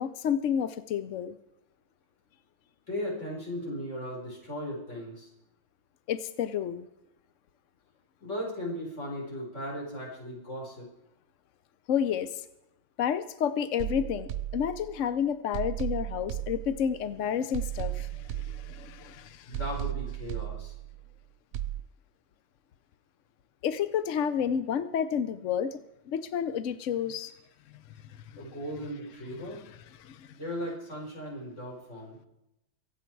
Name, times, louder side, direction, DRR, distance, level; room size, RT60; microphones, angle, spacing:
voice 1, 0.0-1.4 6.1-6.9 11.9-12.3 13.0-19.6 23.6-25.8 26.1-27.3 28.3-28.4 30.0-30.3, left 8 dB, 65° left, 13 dB, 0.7 m, -30 dB
voice 2, 2.9-5.3 8.2-10.9 19.5-20.7 28.4-29.6 30.3-32.2, equal, 35° left, -3 dB, 4.9 m, -37 dB
sound 1, 13.8-15.1 15.5-17.1 17.5-19.1 19.5-21.1 21.5-21.8, right 13 dB, 75° right, 0.7 m, -35 dB
24.0 x 8.6 x 4.6 m, 0.87 s
omnidirectional pair, 2.0 m